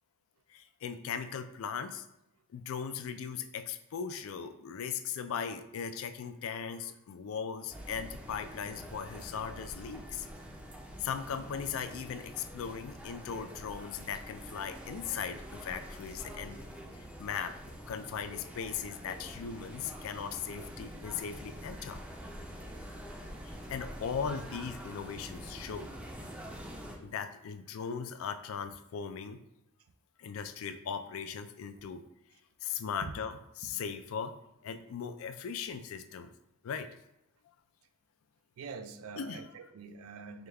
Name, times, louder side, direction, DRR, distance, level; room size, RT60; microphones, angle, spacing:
voice 1, 0.5-2.1 2.5-10.3 11.0-17.6 17.9-22.0 23.4-25.9 27.0-29.4 30.2-32.0 32.6-34.3 34.6-36.3 36.6-36.9 39.2-39.4, left 7 dB, 70° left, 10 dB, 0.3 m, -38 dB
sound 1, 7.7-27.0, equal, 5° right, 0.4 m, -46 dB
voice 2, 38.6-40.5, right 5 dB, 85° right, 9 dB, 0.4 m, -45 dB
4.9 x 2.3 x 3.3 m, 0.84 s
head